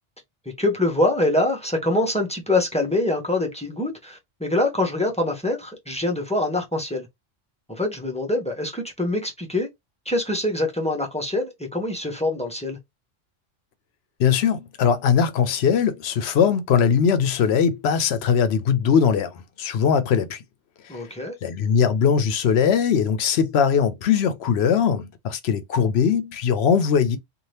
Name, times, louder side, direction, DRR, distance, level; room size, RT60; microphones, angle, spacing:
voice 1, 0.6-7.1 7.8-9.7 10.1-12.8 20.9-21.4, left 2 dB, 5° left, 0.7 m, -24 dB
voice 2, 14.2-19.3 19.6-20.4 21.4-27.2, left 7 dB, 65° left, 0.8 m, -20 dB
2.7 x 2.5 x 3.2 m
omnidirectional pair, 1.2 m